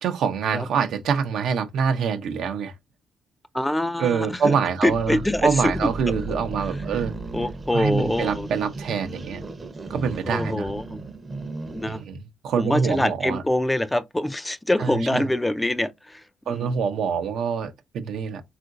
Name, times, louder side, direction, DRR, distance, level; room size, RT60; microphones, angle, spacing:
voice 1, 0.0-2.7 4.0-7.1 7.7-9.4 9.9-10.7 11.9-13.4 14.8-15.3 16.5-18.4, right 6 dB, 75° right, 0.6 m, -25 dB
voice 2, 3.5-5.9 6.3-6.4 7.3-8.5 10.2-11.0 11.7-12.0 12.6-16.7, left 1 dB, 10° left, 0.3 m, -25 dB
sound 1, 4.9-12.1, right 2 dB, 30° right, 0.6 m, -35 dB
3.7 x 2.5 x 2.4 m
cardioid pair, 90°, 0 cm